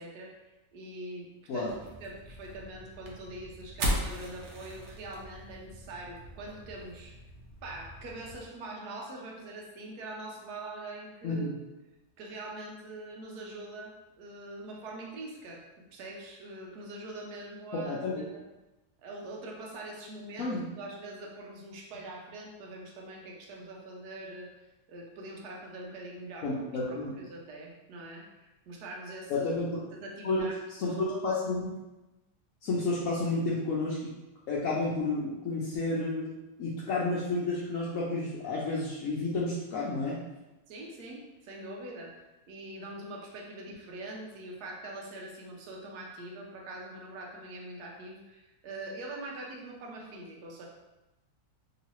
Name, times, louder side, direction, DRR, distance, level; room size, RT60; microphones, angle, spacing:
voice 1, 0.0-1.7 2.0-7.1 7.6-11.7 12.2-18.0 18.3-18.4 19.0-24.5 24.9-29.5 29.9-30.5 30.9-31.4 40.7-50.7, right 2 dB, 85° right, -1 dB, 1.2 m, -43 dB
sound 1, 1.7-8.4, equal, 60° right, 0.8 m, -38 dB
voice 2, 17.7-18.2 20.4-20.6 26.4-27.1 29.3-29.8 30.2-30.5 30.8-31.7 32.6-34.1 34.5-40.2, left 2 dB, 65° left, -6 dB, 0.9 m, -31 dB
3.1 x 2.9 x 2.9 m, 1.0 s
omnidirectional pair, 1.6 m